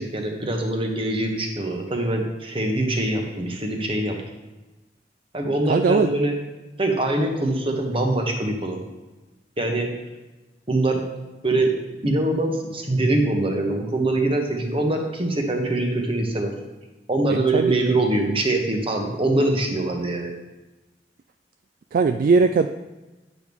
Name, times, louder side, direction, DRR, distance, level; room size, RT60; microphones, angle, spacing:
voice 1, 0.0-4.2 5.3-6.4 6.8-8.8 9.6-9.9 10.7-11.0 11.4-11.7 12.0-16.5 17.1-20.3, right 2 dB, 30° right, 2 dB, 1.3 m, -23 dB
voice 2, 5.7-6.1 17.3-17.8 21.9-22.7, right 4 dB, 50° right, 7 dB, 0.3 m, -19 dB
9.1 x 6.2 x 3.6 m, 1.1 s
head